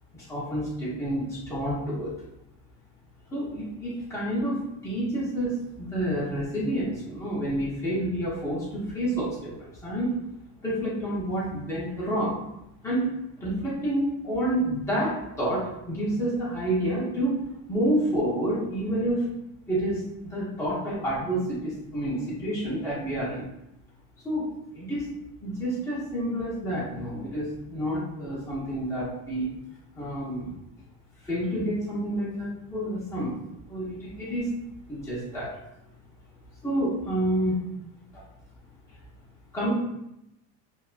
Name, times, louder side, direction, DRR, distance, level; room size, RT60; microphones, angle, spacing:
voice 1, 0.1-2.1 3.3-10.1 10.6-12.3 12.8-13.1 13.4-17.4 17.7-19.2 19.7-23.5 24.2-24.5 24.7-25.1 25.4-29.5 30.0-30.5 31.2-33.3 33.7-34.5 34.9-35.6 36.6-37.6 38.1-38.2 39.5-39.7, right 1 dB, 5° left, -9 dB, 0.7 m, -29 dB
2.6 x 2.3 x 2.4 m, 0.84 s
cardioid pair, 175°, 40 cm